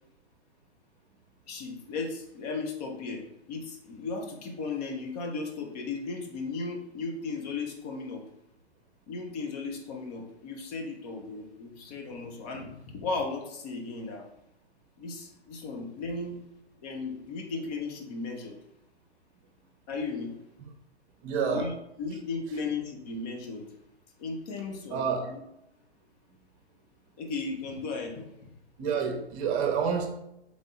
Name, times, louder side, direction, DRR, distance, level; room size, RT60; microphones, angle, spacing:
voice 1, 1.5-3.2 3.5-8.2 9.1-14.3 15.0-16.4 16.8-18.6 19.9-20.3 21.5-21.7 22.0-23.7 24.2-25.4 27.2-28.3, left 4 dB, 35° left, 2 dB, 1.0 m, -35 dB
voice 2, 21.2-21.7 24.9-25.3 28.8-30.1, right 6 dB, 30° right, 4 dB, 0.9 m, -28 dB
3.8 x 3.6 x 3.8 m, 0.83 s
figure-of-eight pair, 120°, 33 cm